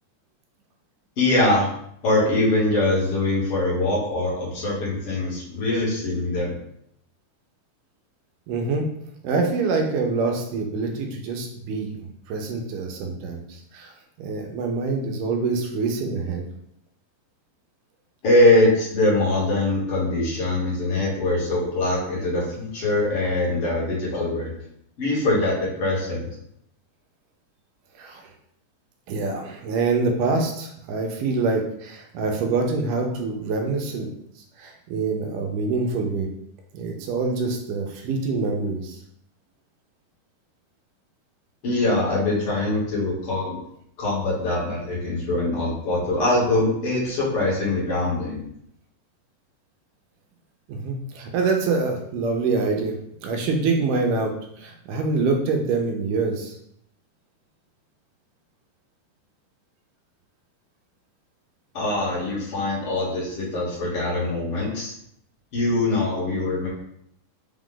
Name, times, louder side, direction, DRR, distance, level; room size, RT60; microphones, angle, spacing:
voice 1, 1.2-1.7 2.0-6.5 18.2-24.5 25.0-26.3 41.6-43.6 44.0-48.4 61.7-64.9 65.5-66.7, left 2 dB, 50° left, -6 dB, 1.9 m, -23 dB
voice 2, 8.5-8.8 9.2-11.9 12.3-13.9 14.2-16.4 28.0-28.2 29.1-34.1 34.6-36.3 36.7-39.0 50.7-53.0 53.2-56.6, right 4 dB, 80° right, 2 dB, 2.2 m, -25 dB
5.5 x 2.5 x 3.7 m, 0.73 s
omnidirectional pair, 3.8 m